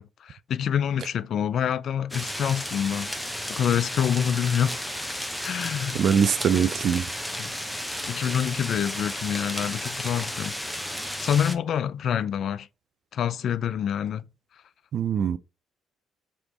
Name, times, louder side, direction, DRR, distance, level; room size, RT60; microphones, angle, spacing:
voice 1, 0.0-3.1 3.5-4.8 5.4-6.0 7.4-7.5 8.1-12.7 13.1-14.2, left 9 dB, 60° left, 0.3 m, -27 dB
sound 1, 2.1-11.6, equal, ahead, 0.8 m, -33 dB
voice 2, 5.9-7.1 14.9-15.4, right 7 dB, 55° right, 0.3 m, -22 dB
3.3 x 3.0 x 3.9 m
hypercardioid pair, 55°, 0 cm